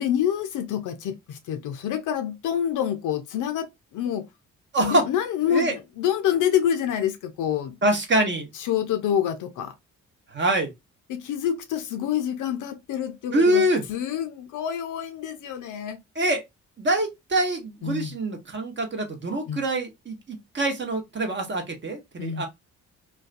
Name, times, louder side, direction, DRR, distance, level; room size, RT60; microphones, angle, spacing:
voice 1, 0.0-4.3 4.8-7.8 8.6-9.7 11.1-13.6 13.9-16.0 17.8-18.1 19.5-19.6 22.2-22.4, left 9 dB, 50° left, 0.5 m, -27 dB
voice 2, 4.7-5.1 5.5-5.7 7.8-8.5 10.3-10.7 13.3-13.8 16.2-16.4 16.8-22.5, right 1 dB, 30° right, 0.8 m, -24 dB
2.3 x 2.2 x 2.3 m
figure-of-eight pair, 40°, 40 cm